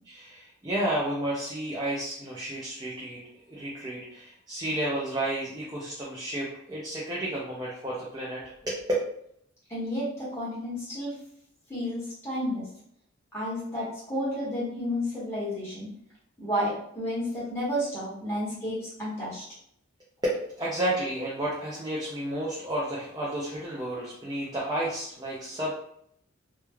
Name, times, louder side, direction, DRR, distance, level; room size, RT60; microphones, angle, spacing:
voice 1, 0.1-3.2 3.5-8.9 20.2-25.7, right 1 dB, 20° right, -6 dB, 0.4 m, -32 dB
voice 2, 9.7-11.1 11.7-12.7 13.3-15.9 16.4-19.4, equal, 15° left, -9 dB, 1.1 m, -31 dB
3.1 x 2.2 x 2.2 m, 0.69 s
head